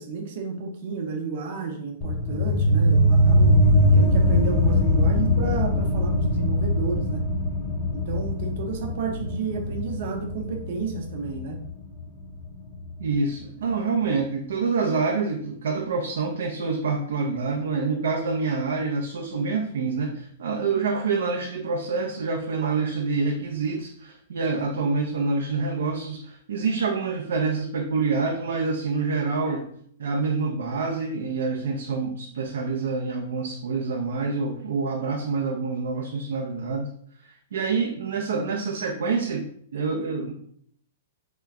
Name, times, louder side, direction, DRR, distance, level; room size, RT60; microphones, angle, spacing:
voice 1, 0.0-3.6 3.9-7.3 7.9-11.6, right 5 dB, 45° right, 3 dB, 0.8 m, -31 dB
sound 1, 2.0-13.1, left 1 dB, 10° left, 0.5 m, -22 dB
voice 2, 13.0-29.7 30.0-36.9 37.2-40.3, right 4 dB, 75° right, 1 dB, 0.6 m, -27 dB
3.3 x 3.0 x 3.6 m, 0.63 s
hypercardioid pair, 170°, 0 cm